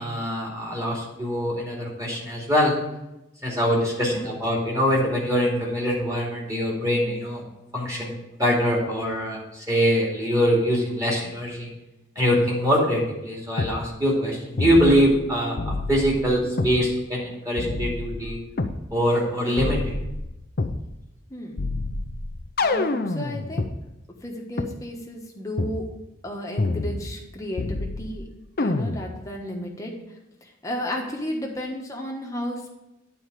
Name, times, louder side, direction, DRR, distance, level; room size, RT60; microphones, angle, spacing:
voice 1, 0.0-2.7 3.4-7.4 7.7-8.1 8.4-11.7 12.2-18.4 18.9-19.9, equal, 15° right, -4 dB, 2.4 m, -23 dB
sound 1, 13.6-13.8 14.6-15.2 15.6-16.8 17.6-18.8 19.6-20.8 21.6-23.7 24.6-24.7 25.6-25.8 26.6-27.3 27.6-28.2 28.6-29.2, left 2 dB, 45° left, 0.6 m, -27 dB
voice 2, 22.6-23.7 24.2-25.8 26.2-28.2 28.6-32.7, left 1 dB, 15° left, 0 dB, 1.3 m, -33 dB
9.5 x 4.5 x 6.7 m, 0.92 s
head